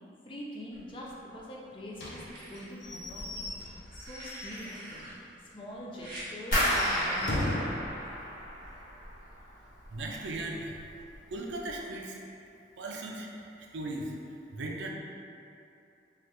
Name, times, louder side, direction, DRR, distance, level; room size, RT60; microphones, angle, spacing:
voice 1, 0.2-5.1 5.4-7.8, left 1 dB, 30° left, -3 dB, 0.3 m, -44 dB
sound 1, 0.7-1.4 2.0-2.6 3.8-5.1 6.0-6.3 7.7-7.9, right 1 dB, 50° right, 0.9 m, -46 dB
Slam / Squeak / Wood, 2.0-5.2 5.5-5.6 5.9-6.0 6.5-7.8, left 1 dB, 80° left, 0.5 m, -38 dB
sound 2, 6.5-9.4 9.7-10.4 10.7-11.1 11.6-11.7, equal, 50° left, 1.2 m, -31 dB
voice 2, 9.9-10.8 11.3-12.2 12.8-13.3 13.6-14.9, right 2 dB, 90° right, 0 dB, 0.4 m, -37 dB
3.2 x 2.4 x 2.9 m, 2.6 s
head